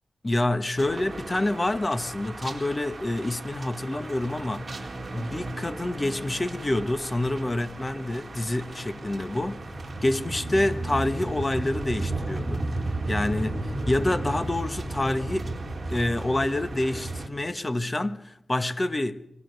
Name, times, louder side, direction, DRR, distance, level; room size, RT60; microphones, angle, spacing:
voice 1, 0.2-4.6 5.1-9.6 10.0-12.6 13.1-15.5 15.9-19.2, left 1 dB, 25° left, 1.3 m, -27 dB
sound 1, 0.8-17.3, right 2 dB, 35° right, 4.4 m, -34 dB
25.5 x 24.0 x 6.7 m
wide cardioid pair, 90°, 0 cm